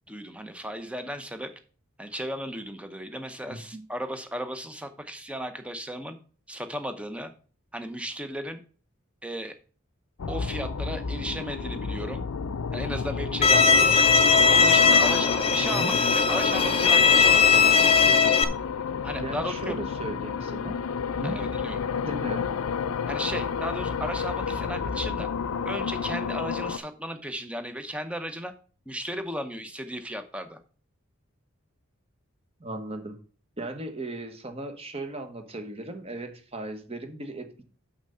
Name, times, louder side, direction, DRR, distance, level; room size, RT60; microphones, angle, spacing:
voice 1, 0.1-1.5 2.0-6.2 6.5-7.3 7.7-8.6 9.2-9.5 10.3-12.2 12.7-14.1 14.5-17.8 19.0-19.9 21.2-21.8 23.1-25.3 25.7-28.5 28.9-30.6, equal, 5° right, 8 dB, 0.7 m, -35 dB
voice 2, 3.5-3.8 15.6-15.9 19.1-20.8 21.2-21.4 22.0-22.5 32.6-33.2 33.6-37.6, right 2 dB, 25° right, 6 dB, 1.1 m, -37 dB
sound 1, 10.2-26.8, left 6 dB, 80° left, 0.5 m, -31 dB
Bowed string instrument, 13.4-18.4, left 5 dB, 25° left, 0.5 m, -19 dB
6.4 x 6.0 x 5.6 m, 0.39 s
head